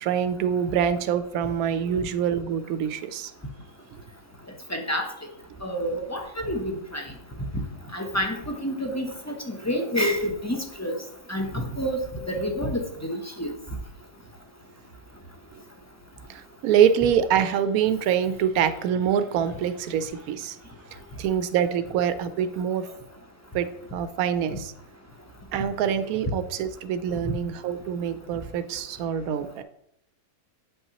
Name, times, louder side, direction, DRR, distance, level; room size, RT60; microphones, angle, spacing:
voice 1, 0.0-3.3 3.9-4.0 16.3-20.6 21.2-22.9 23.5-24.7 25.5-29.6, right 8 dB, 85° right, 12 dB, 1.1 m, -25 dB
voice 2, 4.7-5.0 5.6-7.0 7.9-10.9 11.3-12.0 12.3-12.8 13.1-13.5, equal, 15° left, 2 dB, 0.6 m, -28 dB
8.6 x 5.5 x 2.9 m, 0.74 s
omnidirectional pair, 1.5 m